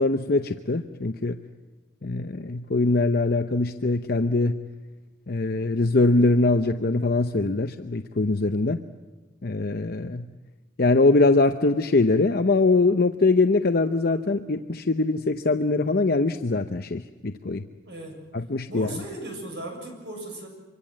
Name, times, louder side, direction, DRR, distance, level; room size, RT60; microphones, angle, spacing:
voice 1, 0.0-1.4 2.0-4.6 5.3-8.8 9.4-10.3 10.8-17.6 18.3-18.9, left 3 dB, 50° left, 7 dB, 0.7 m, -22 dB
voice 2, 17.9-18.2 18.7-20.5, right 1 dB, 60° right, 3 dB, 7.0 m, -37 dB
25.0 x 25.0 x 7.5 m, 1.2 s
head